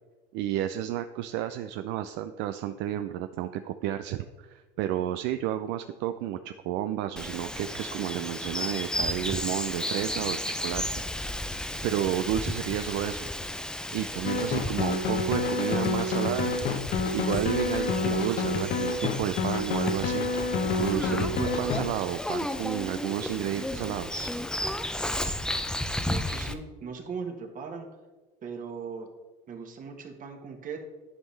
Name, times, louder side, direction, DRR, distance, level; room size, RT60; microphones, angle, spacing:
voice 1, 0.3-10.8 11.8-13.3 13.9-16.5 17.1-20.3 20.8-24.3, right 12 dB, 70° right, 9 dB, 0.4 m, -31 dB
Bird vocalization bird call bird song, 7.2-26.5, left 1 dB, 5° left, 0.6 m, -34 dB
sound 1, 14.2-21.8, left 3 dB, 55° left, 1.0 m, -28 dB
voice 2, 26.0-27.9 28.4-29.1 29.5-30.8, right 5 dB, 45° right, 4 dB, 1.5 m, -38 dB
11.0 x 5.4 x 3.3 m, 1.3 s
supercardioid pair, 90°, 19 cm